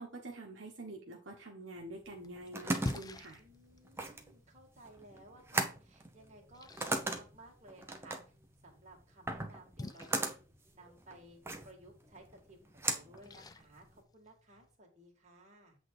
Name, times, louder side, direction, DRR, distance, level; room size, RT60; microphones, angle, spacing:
voice 1, 0.0-3.4, right 2 dB, 65° right, 0 dB, 1.3 m, -47 dB
Splash splatter, 1.8-14.8, left 2 dB, 20° left, 0.4 m, -50 dB
sound 1, 2.1-14.0, right 2 dB, 10° right, 0.8 m, -39 dB
voice 2, 3.4-8.2 8.6-10.3 10.7-11.4 11.6-15.8, right 1 dB, 35° right, 0 dB, 2.2 m, -57 dB
8.3 x 3.7 x 4.9 m, 0.35 s
head